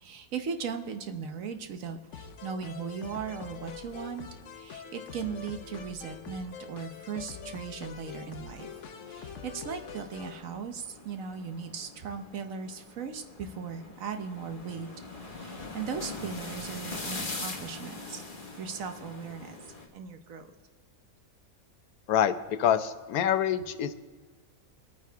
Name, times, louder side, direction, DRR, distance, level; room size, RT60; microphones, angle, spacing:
voice 1, 0.0-4.3 4.5-8.7 9.1-14.9 15.2-18.2 18.6-19.6 19.9-20.5, right 6 dB, 65° right, 7 dB, 1.2 m, -38 dB
sound 1, 2.1-10.4, left 6 dB, 60° left, 1.0 m, -44 dB
sound 2, 8.5-19.9, left 3 dB, 35° left, 1.5 m, -43 dB
voice 2, 22.6-23.9, left 9 dB, 80° left, 11 dB, 1.1 m, -25 dB
24.0 x 9.3 x 3.4 m, 1.4 s
omnidirectional pair, 1.5 m